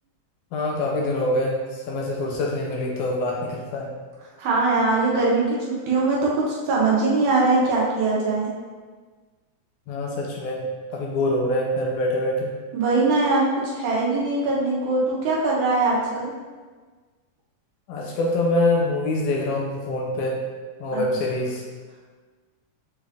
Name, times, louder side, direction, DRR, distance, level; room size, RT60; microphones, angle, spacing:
voice 1, 0.5-3.9 9.9-10.6 10.9-12.6 17.9-20.4 20.8-21.6, left 1 dB, 80° left, -2 dB, 2.0 m, -25 dB
voice 2, 4.4-8.5 12.7-16.3 20.9-21.0, right 3 dB, 75° right, -5 dB, 2.0 m, -22 dB
6.5 x 2.4 x 3.4 m, 1.4 s
omnidirectional pair, 3.8 m